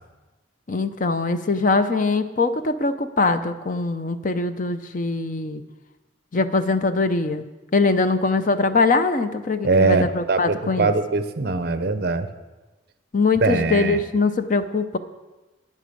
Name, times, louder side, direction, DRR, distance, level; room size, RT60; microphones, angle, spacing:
voice 1, 0.7-5.6 6.3-7.4 7.7-10.9 13.1-15.0, left 3 dB, 40° left, 10 dB, 0.6 m, -22 dB
voice 2, 9.6-12.3 13.4-14.0, right 3 dB, 50° right, 11 dB, 0.8 m, -21 dB
11.0 x 9.7 x 6.8 m, 1.2 s
head